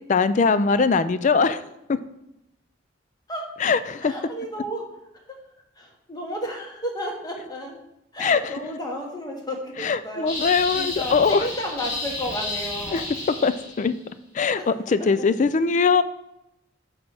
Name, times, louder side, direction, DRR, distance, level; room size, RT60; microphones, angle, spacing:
voice 1, 0.1-1.6 1.9-2.0 3.6-4.1 8.2-8.4 9.8-11.5 12.9-13.0 13.4-14.0 14.3-16.0, left 5 dB, 40° left, 13 dB, 0.4 m, -21 dB
voice 2, 4.0-4.8 5.8-7.8 8.1-13.1 14.5-14.7, equal, 20° left, 0 dB, 1.5 m, -33 dB
sound 1, 10.3-13.9, left 2 dB, 70° left, 3.2 m, -32 dB
6.2 x 6.0 x 4.8 m, 0.85 s
head